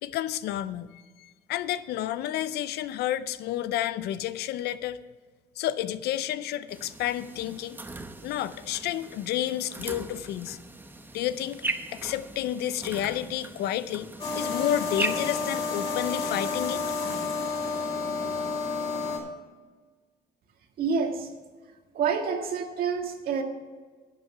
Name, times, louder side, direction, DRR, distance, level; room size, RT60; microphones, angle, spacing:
voice 1, 0.0-5.0 5.6-7.8 8.2-10.6 11.1-11.6 11.9-16.8, left 12 dB, 75° left, 14 dB, 0.6 m, -30 dB
sound 1, 6.7-17.3, right 2 dB, 10° right, 0.9 m, -39 dB
sound 2, 14.2-19.2, left 4 dB, 35° left, 3.9 m, -30 dB
voice 2, 20.8-21.3 21.9-23.4, right 5 dB, 60° right, 4 dB, 1.7 m, -28 dB
11.5 x 7.8 x 5.7 m, 1.4 s
cardioid pair, 110°, 17 cm